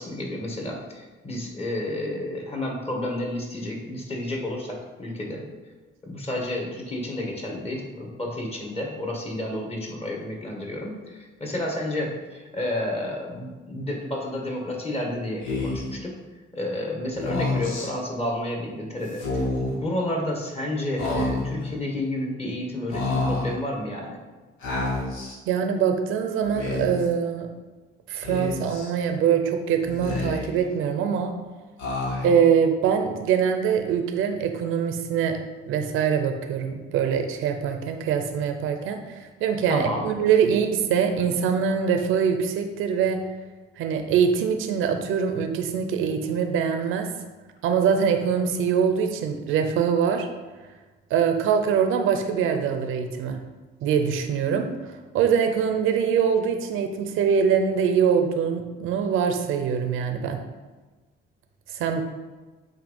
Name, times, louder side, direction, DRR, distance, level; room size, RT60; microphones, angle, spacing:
voice 1, 0.0-5.4 6.0-16.2 16.5-24.2 39.7-40.0, left 1 dB, 30° left, -1 dB, 1.9 m, -31 dB
Speech, 15.4-15.9 17.1-17.9 19.1-19.8 21.0-21.7 22.9-23.6 24.6-25.4 26.4-27.1 28.2-28.9 29.8-30.6 31.8-32.5, left 2 dB, 90° left, 1.6 m, -28 dB
voice 2, 25.5-27.5 28.1-31.3 32.2-35.4 35.7-43.2 43.8-47.1 47.6-50.3 51.1-53.4 53.8-60.4 61.7-62.0, right 7 dB, 90° right, 6 dB, 0.7 m, -23 dB
7.7 x 2.8 x 5.3 m, 1.3 s
cardioid pair, 90°, 20 cm